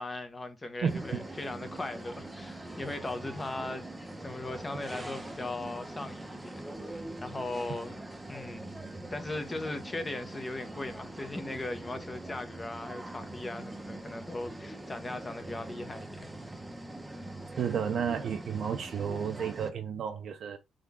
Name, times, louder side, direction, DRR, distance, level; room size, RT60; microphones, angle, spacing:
voice 1, 0.0-8.7 9.1-16.3, left 2 dB, 20° left, 0.8 m, -38 dB
voice 2, 0.8-1.2 17.6-20.6, right 7 dB, 60° right, 0.5 m, -32 dB
sound 1, 0.9-19.7, right 1 dB, 10° right, 0.8 m, -43 dB
3.7 x 3.5 x 3.5 m
cardioid pair, 110°, 0 cm